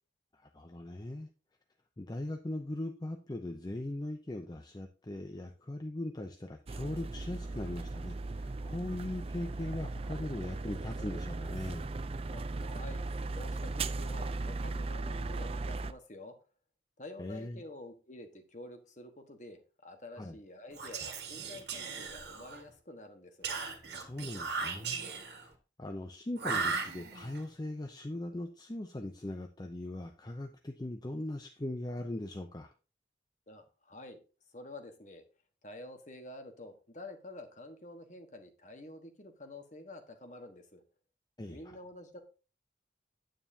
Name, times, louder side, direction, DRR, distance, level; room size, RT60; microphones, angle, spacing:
voice 1, 0.3-1.3 2.0-11.9 17.2-17.6 20.2-20.4 23.9-25.5 25.8-32.7 41.4-41.8, left 1 dB, 20° left, 5 dB, 0.5 m, -40 dB
sound 1, 6.7-15.9, right 3 dB, 30° right, 0.4 m, -37 dB
voice 2, 12.3-13.1 13.3-16.4 17.0-23.5 33.5-34.2 34.5-35.2 35.6-40.8 41.5-42.2, left 2 dB, 40° left, 6 dB, 1.3 m, -49 dB
Whispering, 20.7-22.7 23.4-25.5 26.4-27.4, right 4 dB, 65° right, 1.7 m, -37 dB
9.6 x 9.0 x 2.7 m, 0.34 s
head